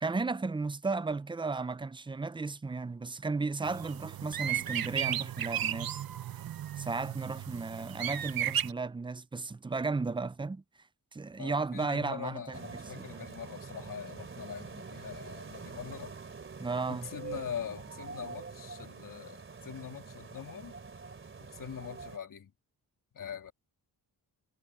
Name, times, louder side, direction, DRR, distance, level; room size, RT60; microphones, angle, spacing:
voice 1, 0.0-6.0 6.8-10.6 11.1-12.6 13.0-13.3 16.6-17.1, right 3 dB, 15° right, 0.4 m, -34 dB
sound 1, 3.6-8.7, right 11 dB, 65° right, 1.0 m, -35 dB
voice 2, 11.4-16.1 16.9-20.7 21.4-22.5 23.1-23.5, left 8 dB, 55° left, 2.3 m, -43 dB
sound 2, 12.5-22.2, right 4 dB, 30° right, 3.0 m, -45 dB
wide cardioid pair, 165°, 39 cm